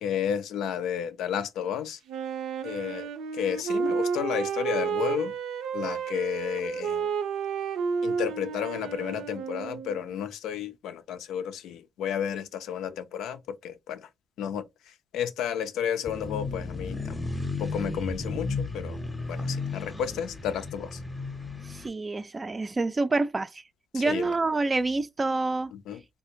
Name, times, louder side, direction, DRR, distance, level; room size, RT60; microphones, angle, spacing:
voice 1, 0.0-2.0 2.6-3.1 3.3-5.3 5.7-7.1 8.0-14.1 14.4-14.6 15.1-17.2 17.6-19.0 19.3-21.0 23.9-24.2 25.9-26.0, left 8 dB, 85° left, 0.4 m, -32 dB
Wind instrument woodwind instrument, 2.1-10.1, right 6 dB, 85° right, 0.5 m, -31 dB
sound 1, 16.0-21.9, left 3 dB, 15° left, 0.7 m, -34 dB
voice 2, 21.7-23.6 23.9-25.7, right 3 dB, 25° right, 0.3 m, -27 dB
3.3 x 2.4 x 2.8 m
cardioid pair, 90°, 0 cm